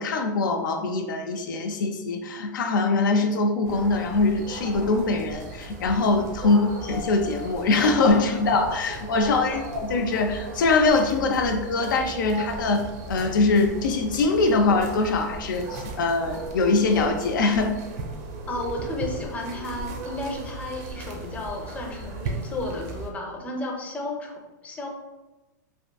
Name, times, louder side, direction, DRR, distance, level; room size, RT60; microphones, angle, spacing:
voice 1, 0.0-17.8, left 3 dB, 85° left, 4 dB, 0.4 m, -23 dB
sound 1, 3.6-23.1, right 3 dB, 55° right, 0.6 m, -36 dB
voice 2, 18.5-24.9, left 2 dB, 15° left, 0 dB, 0.5 m, -33 dB
3.5 x 2.5 x 2.3 m, 1.1 s
hypercardioid pair, 125°, 10 cm